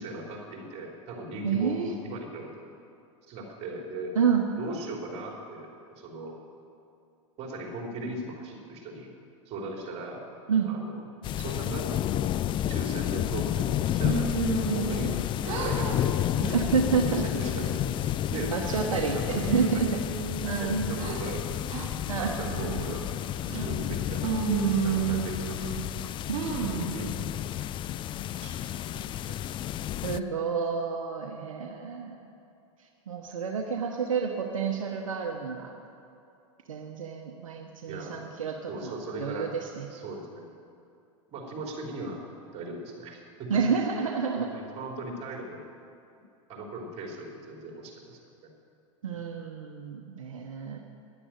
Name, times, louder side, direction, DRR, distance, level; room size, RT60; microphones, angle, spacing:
voice 1, 0.0-2.7 3.3-4.2 4.6-6.4 7.4-9.1 9.5-10.2 10.7-11.0 11.4-12.3 12.7-15.1 15.4-16.2 16.8-19.8 20.5-21.7 22.2-25.5 26.3-27.5 28.4-29.4 37.9-38.3 38.7-39.5 39.9-40.5 41.3-42.2 42.5-43.5 44.4-45.6 46.5-48.2 49.0-49.2, right 2 dB, 40° right, -1 dB, 3.8 m, -39 dB
voice 2, 1.4-1.9 4.2-4.5 10.5-10.7 16.5-17.2 18.5-19.9 20.4-20.9 22.1-22.4 23.6-23.7 26.3-26.7 30.0-32.2 33.1-35.7 36.7-39.9 43.5-44.5 49.0-50.8, right 6 dB, 85° right, 2 dB, 1.1 m, -29 dB
sound 1, 11.2-30.2, left 12 dB, 30° left, 0.4 m, -31 dB
sound 2, 14.0-15.2 15.4-16.0 16.4-16.7 17.2-17.8 18.3-19.0 19.4-21.2 21.7-21.9 22.4-22.9 23.4-23.9 24.2-25.8 26.3-26.9, right 6 dB, 55° right, 2.9 m, -31 dB
11.0 x 9.9 x 9.1 m, 2.6 s
hypercardioid pair, 95°, 17 cm